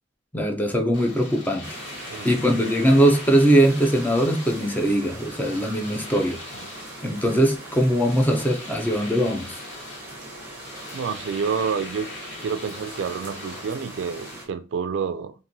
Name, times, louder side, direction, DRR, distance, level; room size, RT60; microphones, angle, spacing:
voice 1, 0.3-1.8 2.2-6.4 7.0-9.6, right 1 dB, 10° left, 0.5 m, -21 dB
Domestic sounds home sounds, 0.9-14.3, left 2 dB, 75° left, 1.4 m, -41 dB
sound 1, 1.6-14.5, right 1 dB, 15° right, 0.8 m, -41 dB
voice 2, 2.1-2.6 6.5-6.7 10.9-12.1 12.4-15.3, right 6 dB, 75° right, 0.3 m, -29 dB
2.9 x 2.5 x 2.6 m
head